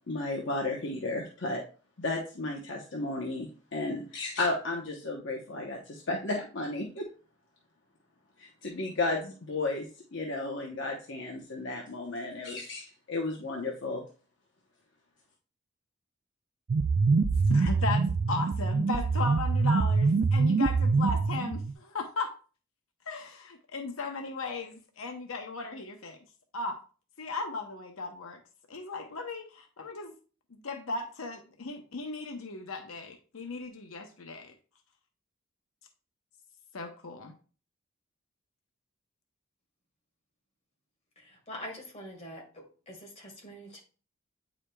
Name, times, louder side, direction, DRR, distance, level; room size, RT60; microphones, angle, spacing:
voice 1, 0.1-1.6 2.0-7.1 8.4-9.8 10.1-14.0, left 2 dB, 60° left, 0.9 m, -33 dB
sound 1, 16.7-21.7, right 4 dB, 40° right, 0.3 m, -25 dB
voice 2, 17.5-22.3 23.1-26.2 26.5-26.8 27.2-28.4 28.7-30.1 30.5-34.5 36.7-37.3, left 3 dB, 90° left, 0.8 m, -36 dB
voice 3, 41.5-43.8, equal, 35° left, 1.7 m, -44 dB
8.7 x 4.9 x 2.3 m
head